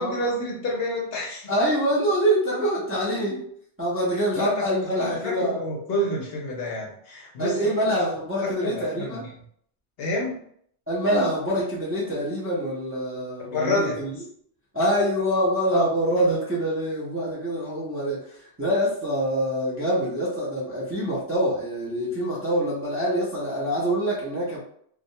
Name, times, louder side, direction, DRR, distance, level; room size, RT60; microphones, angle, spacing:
voice 1, 0.0-1.5 4.4-7.8 8.4-9.3 10.0-10.4 13.4-14.0, left 1 dB, 65° left, -1 dB, 0.7 m, -29 dB
voice 2, 1.5-3.4 3.8-5.6 7.4-9.2 10.9-14.1 14.7-24.6, equal, 20° right, -7 dB, 0.4 m, -25 dB
2.3 x 2.1 x 2.7 m, 0.65 s
omnidirectional pair, 1.2 m